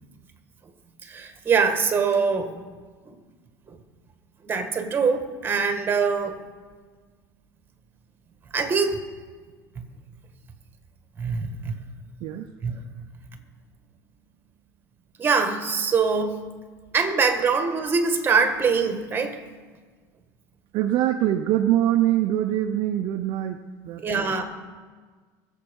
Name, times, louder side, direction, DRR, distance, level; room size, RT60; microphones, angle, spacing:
voice 1, 1.0-2.6 3.7-3.8 4.4-6.4 8.5-9.0 11.2-11.7 12.6-12.7 15.2-16.4 16.9-19.4 24.0-24.4, right 5 dB, 20° right, 7 dB, 1.6 m, -23 dB
voice 2, 20.7-23.6 23.8-24.3, right 12 dB, 55° right, 7 dB, 0.6 m, -23 dB
21.5 x 7.3 x 5.3 m, 1.5 s
supercardioid pair, 130°, 9 cm